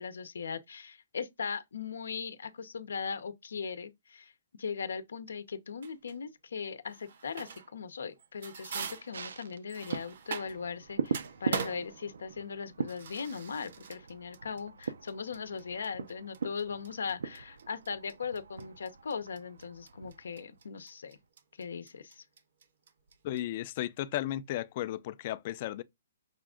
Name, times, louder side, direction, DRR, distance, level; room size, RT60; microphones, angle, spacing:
voice 1, 0.0-4.3 4.6-21.2 21.6-22.2, left 5 dB, 90° left, 0.7 m, -39 dB
sound 1, 5.8-6.2 6.9-7.8 8.1-10.8 11.1-23.4, right 6 dB, 60° right, 0.9 m, -42 dB
sound 2, 9.1-20.8 21.2-21.3, right 6 dB, 85° right, 0.6 m, -41 dB
voice 2, 23.2-25.8, left 13 dB, 35° left, 0.4 m, -34 dB
5.7 x 2.4 x 3.7 m
hypercardioid pair, 165°, 0 cm